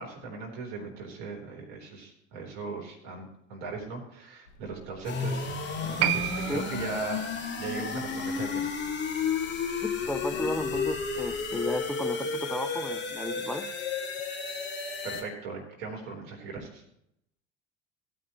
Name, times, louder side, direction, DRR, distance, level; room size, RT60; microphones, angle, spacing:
voice 1, 0.0-5.5 6.1-7.3 7.6-8.8 15.0-16.8, right 4 dB, 65° right, 0 dB, 3.7 m, -38 dB
sound 1, 4.5-11.8, left 3 dB, 75° left, 1.3 m, -48 dB
sound 2, 5.0-15.2, left 5 dB, 25° left, 2.3 m, -32 dB
Piano, 6.0-13.0 13.2-13.3, right 13 dB, 45° right, 0.5 m, -36 dB
voice 2, 9.8-13.7, left 1 dB, 5° left, 12 dB, 0.6 m, -34 dB
16.0 x 9.3 x 3.0 m, 0.76 s
figure-of-eight pair, 70°, 40 cm